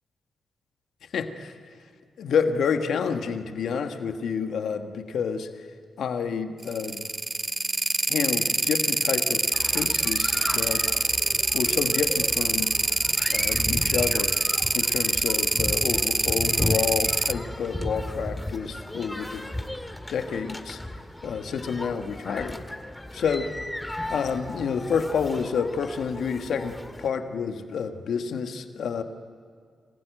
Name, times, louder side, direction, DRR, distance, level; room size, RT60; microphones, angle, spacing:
voice 1, 1.1-1.6 2.2-5.7 6.0-7.0 8.1-10.8 11.5-12.7 13.3-14.4 14.7-19.5 20.1-20.8 21.2-22.6 23.1-23.5 24.1-29.0, left 6 dB, 75° left, 7 dB, 1.4 m, -29 dB
sound 1, 6.6-17.3, right 2 dB, 30° right, 0.6 m, -24 dB
sound 2, 9.5-27.1, left 1 dB, 15° left, 1.9 m, -35 dB
26.5 x 15.5 x 9.1 m, 2.1 s
supercardioid pair, 45°, 0 cm